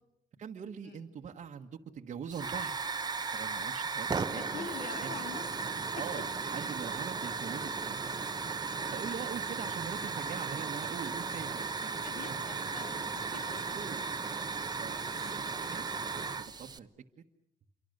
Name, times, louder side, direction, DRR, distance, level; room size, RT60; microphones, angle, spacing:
voice 1, 0.4-2.8 3.3-4.7 5.0-5.2 5.9-8.0 8.9-11.9 12.3-12.4 13.7-14.0 14.8-16.9, right 7 dB, 45° right, 1 dB, 1.4 m, -43 dB
Hiss / Fire, 2.3-16.8, right 5 dB, 25° right, 1.0 m, -36 dB
voice 2, 4.3-5.5 5.9-6.5 9.0-9.2 12.0-13.8 15.1-15.5, left 5 dB, 65° left, 4 dB, 3.5 m, -46 dB
28.0 x 24.0 x 6.7 m, 0.78 s
cardioid pair, 110°, 17 cm